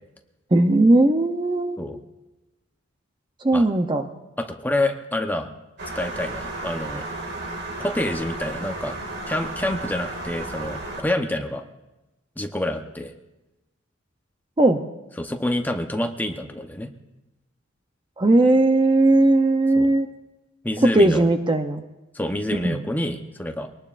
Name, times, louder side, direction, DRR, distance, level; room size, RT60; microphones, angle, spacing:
voice 1, 0.5-1.9 3.4-4.1 14.6-14.8 18.2-20.1 20.8-21.8 22.6-22.8, right 2 dB, 20° right, 7 dB, 0.6 m, -18 dB
voice 2, 4.4-5.5 5.9-7.0 7.8-9.0 9.3-11.6 12.4-13.1 15.2-16.9 19.8-19.9 20.6-21.2 22.1-23.7, left 1 dB, 10° left, 5 dB, 0.8 m, -27 dB
sound 1, 5.8-11.0, right 2 dB, 55° right, 2.1 m, -33 dB
23.5 x 19.0 x 2.5 m, 1.0 s
head